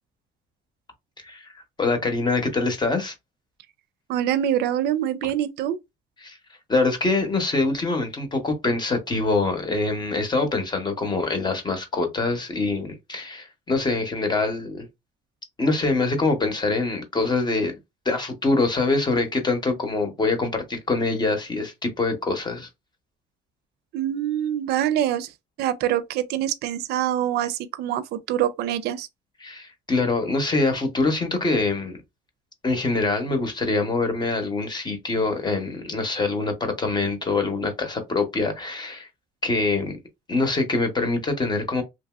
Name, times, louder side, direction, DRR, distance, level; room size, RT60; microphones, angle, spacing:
voice 1, 1.2-1.5 1.8-3.1 6.2-6.4 6.7-14.8 15.6-17.8 18.0-22.7 29.4-32.0 32.6-39.1 39.4-40.0 40.3-41.8, left 3 dB, 25° left, 0.8 m, -24 dB
voice 2, 4.1-5.8 23.9-25.3 25.6-29.1, right 11 dB, 75° right, 0.4 m, -25 dB
2.9 x 2.6 x 2.3 m
cardioid pair, 110°, 17 cm